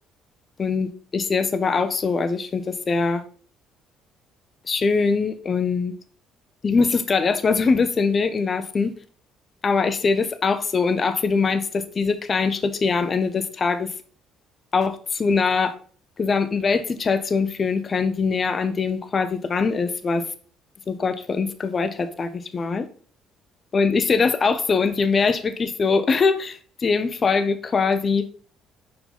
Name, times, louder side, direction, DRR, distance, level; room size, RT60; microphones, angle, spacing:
voice 1, 0.6-3.2 4.7-5.9 6.6-8.9 9.6-13.9 14.7-15.7 16.2-20.2 20.9-22.9 23.7-28.3, left 4 dB, 40° left, 11 dB, 0.8 m, -22 dB
5.3 x 4.6 x 4.1 m, 0.43 s
supercardioid pair, 65°, 0 cm